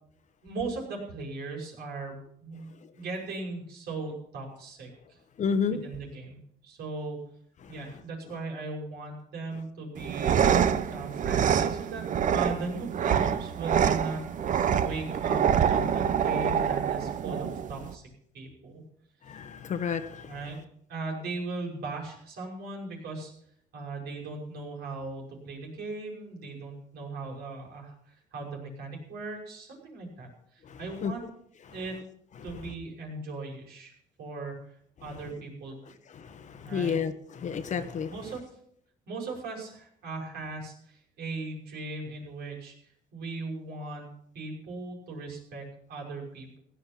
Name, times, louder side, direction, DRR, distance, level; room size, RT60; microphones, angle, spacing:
voice 1, 0.4-2.7 2.9-5.2 5.7-6.4 6.6-7.2 7.7-12.1 12.3-18.0 18.3-18.8 20.3-20.6 20.9-23.3 23.7-31.3 31.7-32.0 32.4-33.9 34.2-35.8 36.6-37.0 38.1-38.5 39.1-42.7 43.1-44.1 44.3-46.6, right 3 dB, 75° right, 0 dB, 5.9 m, -38 dB
voice 2, 5.4-5.8 7.6-7.8 19.2-20.3 30.7-31.1 32.6-32.7 36.1-38.1, left 6 dB, 45° left, 9 dB, 1.1 m, -31 dB
sound 1, 10.0-17.9, right 8 dB, 50° right, 0.9 m, -26 dB
16.5 x 10.0 x 5.9 m, 0.67 s
cardioid pair, 110°, 17 cm